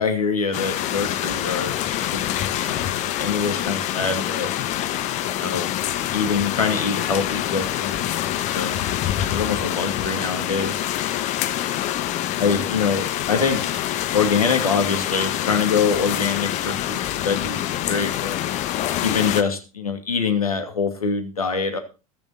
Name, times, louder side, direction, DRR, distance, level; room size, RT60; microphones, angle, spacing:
voice 1, 0.0-4.5 5.3-5.7 6.1-8.9 9.3-10.8 11.7-13.6 14.1-18.4 19.0-21.8, left 5 dB, 80° left, 6 dB, 2.6 m, -25 dB
sound 1, 0.5-19.4, left 12 dB, 40° left, 1.4 m, -26 dB
21.5 x 7.2 x 4.2 m, 0.33 s
figure-of-eight pair, 80°, 18 cm